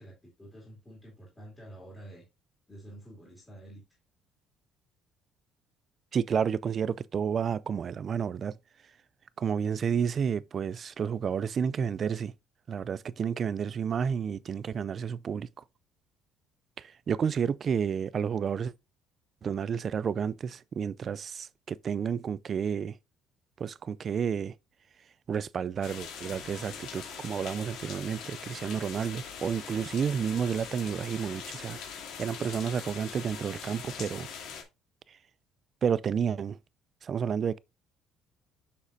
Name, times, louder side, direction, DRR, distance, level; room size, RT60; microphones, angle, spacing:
voice 1, 0.0-2.2 2.7-4.0, right 1 dB, 10° left, 2.6 m, -49 dB
voice 2, 6.1-8.6 9.4-12.3 12.7-15.5 16.8-18.7 19.4-23.0 23.6-24.5 25.3-31.8 32.2-34.3 35.1-35.2 35.8-36.6 37.0-37.6, right 7 dB, 30° right, 0.3 m, -31 dB
sound 1, 25.8-34.6, left 6 dB, 65° left, 2.3 m, -42 dB
7.2 x 6.5 x 2.6 m
cardioid pair, 160°, 0 cm